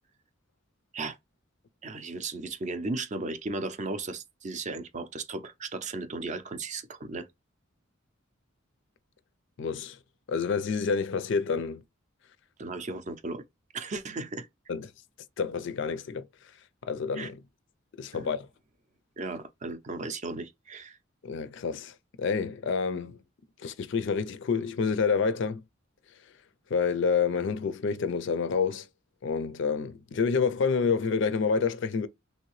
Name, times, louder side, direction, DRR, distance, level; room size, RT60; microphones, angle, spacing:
voice 1, 1.8-7.3 12.6-13.4 13.7-14.5 17.1-17.3 18.1-18.3 19.2-21.0, right 3 dB, 35° right, 0.5 m, -35 dB
voice 2, 9.6-10.0 10.3-11.8 14.7-14.9 15.4-16.3 16.8-17.4 18.0-18.5 21.2-23.2 23.6-25.6 26.7-28.9 29.2-32.1, left 5 dB, 65° left, 0.4 m, -28 dB
3.1 x 2.7 x 3.0 m
head